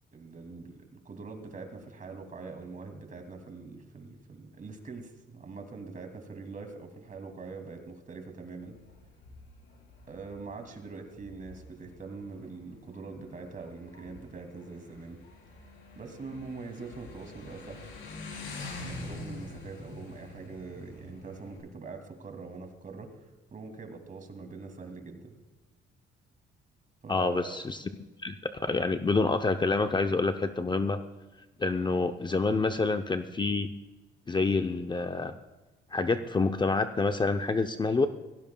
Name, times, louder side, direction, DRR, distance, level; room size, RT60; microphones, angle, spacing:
voice 1, 0.1-8.8 10.1-15.2 16.0-17.8 18.8-23.2 23.5-25.3 27.0-27.6, right 4 dB, 40° right, 5 dB, 2.5 m, -43 dB
Motorcycle, 8.6-21.6, left 3 dB, 80° left, 4.1 m, -46 dB
voice 2, 27.1-27.8 28.2-31.0 31.6-33.7 34.3-35.3 35.9-38.1, left 3 dB, 25° left, 7 dB, 0.6 m, -27 dB
18.0 x 16.0 x 2.3 m, 1.2 s
cardioid pair, 90°, 20 cm